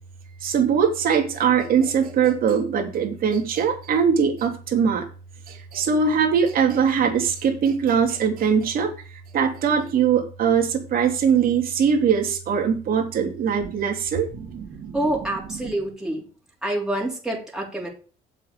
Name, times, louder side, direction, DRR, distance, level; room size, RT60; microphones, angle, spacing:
voice 1, 0.4-5.0 5.7-8.9 9.3-15.0, right 7 dB, 60° right, 1 dB, 3.2 m, -21 dB
voice 2, 14.9-16.3 16.6-17.9, right 1 dB, 5° right, -2 dB, 3.5 m, -27 dB
7.5 x 6.4 x 6.7 m, 0.38 s
cardioid pair, 110°, 17 cm